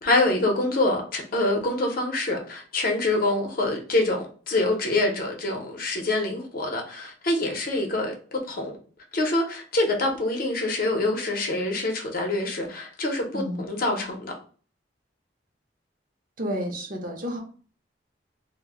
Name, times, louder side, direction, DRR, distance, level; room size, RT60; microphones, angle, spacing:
voice 1, 0.0-8.8 9.1-14.3, left 2 dB, 55° left, 0.6 m, -25 dB
voice 2, 13.3-13.7 16.4-17.4, equal, 50° right, 0.6 m, -31 dB
2.0 x 2.0 x 3.4 m
head